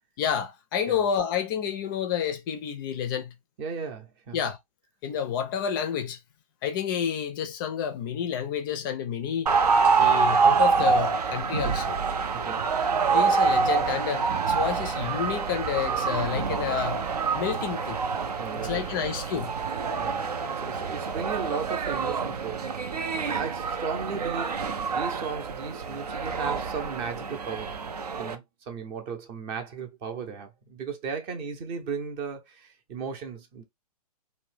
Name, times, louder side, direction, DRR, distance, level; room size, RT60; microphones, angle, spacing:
voice 1, 0.2-3.3 4.3-4.6 5.0-6.2 6.6-9.5 10.0-12.0 13.1-17.0 17.3-18.0 18.5-19.5, left 8 dB, 35° left, 0.4 m, -29 dB
voice 2, 3.6-4.4 12.3-12.7 18.4-18.9 19.9-20.3 20.6-22.9 23.2-27.8 28.2-33.6, right 6 dB, 30° right, 0.6 m, -36 dB
sound 1, 9.5-28.4, right 5 dB, 80° right, 0.5 m, -26 dB
2.6 x 2.1 x 3.2 m
figure-of-eight pair, 115°, 20 cm